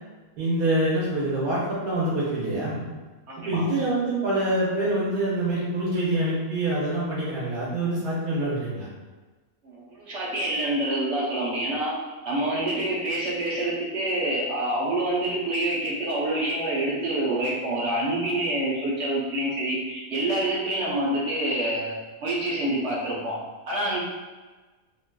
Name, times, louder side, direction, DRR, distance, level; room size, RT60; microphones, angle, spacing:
voice 1, 0.4-2.8 3.5-8.9, right 1 dB, 80° right, -8 dB, 1.3 m, -25 dB
voice 2, 3.3-3.6 9.6-11.9 12.3-22.0 22.2-23.4 23.7-24.0, right 1 dB, 55° right, -6 dB, 0.9 m, -27 dB
3.6 x 2.6 x 2.2 m, 1.3 s
omnidirectional pair, 1.6 m